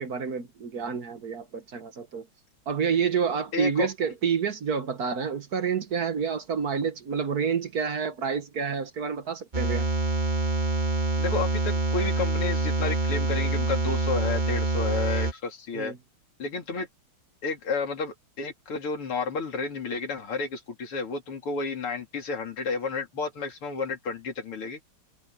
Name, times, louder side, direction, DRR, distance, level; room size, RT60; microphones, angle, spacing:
voice 1, 0.0-2.3 2.7-9.9 15.7-16.0, right 6 dB, 50° right, 1.5 m, -28 dB
voice 2, 3.5-3.9 11.2-15.9 16.4-16.9 17.4-24.8, left 4 dB, 90° left, 3.9 m, -31 dB
sound 1, 9.5-15.3, right 2 dB, 25° right, 1.7 m, -26 dB
omnidirectional pair, 2.4 m